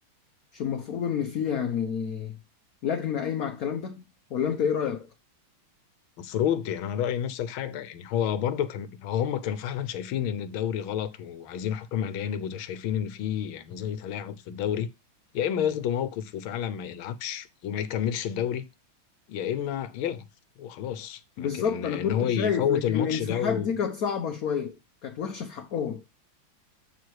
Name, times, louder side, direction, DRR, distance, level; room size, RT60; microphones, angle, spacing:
voice 1, 0.5-2.4 2.8-4.0 4.3-5.1 21.4-24.8 25.0-26.0, left 7 dB, 60° left, 1.0 m, -29 dB
voice 2, 6.2-14.9 15.3-18.6 19.3-20.3 20.6-23.7, left 9 dB, 85° left, 1.6 m, -30 dB
7.7 x 4.7 x 4.5 m
omnidirectional pair, 2.2 m